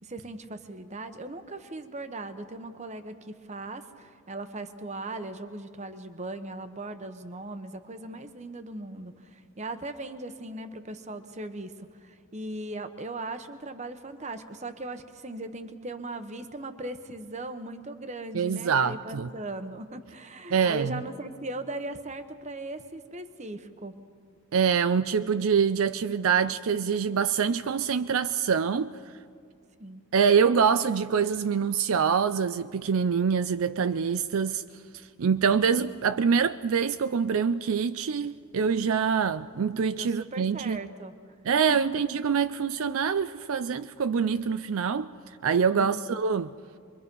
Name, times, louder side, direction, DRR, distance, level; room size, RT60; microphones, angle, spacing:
voice 1, 0.0-24.0 29.8-30.0 40.0-41.2 41.7-41.8 45.7-46.2, right 2 dB, 30° right, 1.0 m, -38 dB
voice 2, 18.3-19.3 20.5-21.0 24.5-28.9 30.1-34.6 35.2-40.8 41.5-45.1 45.4-46.5, right 6 dB, 70° right, 0.4 m, -25 dB
26.0 x 23.0 x 5.4 m
head